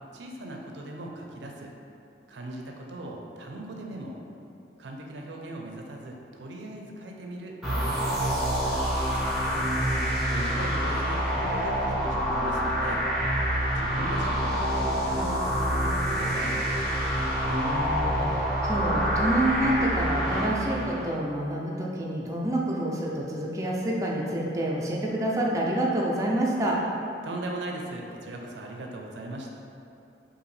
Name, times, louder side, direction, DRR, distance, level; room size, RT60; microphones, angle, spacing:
voice 1, 0.1-1.7 2.3-4.2 4.8-8.8 10.3-13.0 13.8-16.6 27.2-29.5, right 1 dB, 80° right, 1 dB, 0.5 m, -39 dB
sound 1, 7.6-21.1, equal, ahead, 0.8 m, -27 dB
voice 2, 9.5-10.2 17.3-26.8, right 1 dB, 20° right, -3 dB, 0.4 m, -28 dB
4.9 x 2.7 x 3.2 m, 2.7 s
head